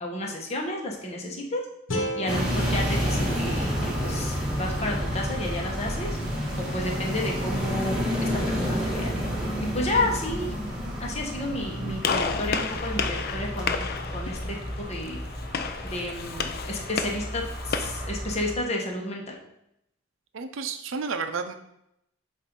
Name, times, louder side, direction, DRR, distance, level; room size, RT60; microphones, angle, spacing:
voice 1, 0.0-1.6 2.2-6.1 6.6-9.1 9.7-10.5 11.0-13.9 14.1-14.6 14.9-15.2 15.8-19.4, left 1 dB, 35° left, 0 dB, 1.0 m, -31 dB
sound 1, 1.9-5.0, equal, 85° left, 1.1 m, -35 dB
sound 2, 2.3-18.5, equal, 5° right, 1.6 m, -30 dB
Gunshot gunfire, 12.0-18.1, left 5 dB, 55° left, 0.4 m, -32 dB
voice 2, 20.3-21.5, right 5 dB, 80° right, 7 dB, 0.5 m, -31 dB
7.3 x 2.6 x 5.2 m, 0.80 s
head